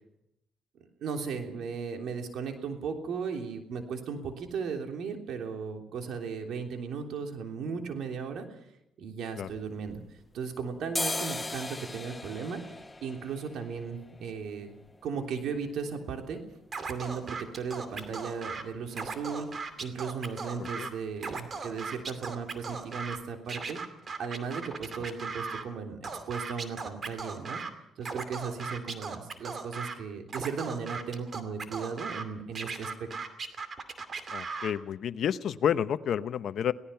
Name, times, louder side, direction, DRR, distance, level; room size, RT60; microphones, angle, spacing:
voice 1, 1.0-8.6 9.0-10.0 10.3-12.6 13.0-14.7 15.0-16.4 16.9-19.5 19.8-23.8 24.2-27.6 28.0-33.1, right 5 dB, 75° right, 4 dB, 3.3 m, -36 dB
sound 1, 9.4-10.4 10.8-18.5 18.8-18.9 19.2-19.7 20.0-20.2 20.5-20.8 21.0-21.7 22.1-22.2 22.7-22.8 23.1-23.2, left 2 dB, 15° left, 0.9 m, -40 dB
Scratching (performance technique), 16.7-18.6 18.9-20.9 21.2-23.2 23.5-25.6 26.0-27.7 28.0-29.9 30.3-32.2 32.5-34.7, right 4 dB, 45° right, 2.5 m, -37 dB
voice 2, 20.6-20.9 34.3-36.7, left 9 dB, 65° left, 13 dB, 0.9 m, -30 dB
26.0 x 18.0 x 5.7 m, 0.82 s
cardioid pair, 90°, 0 cm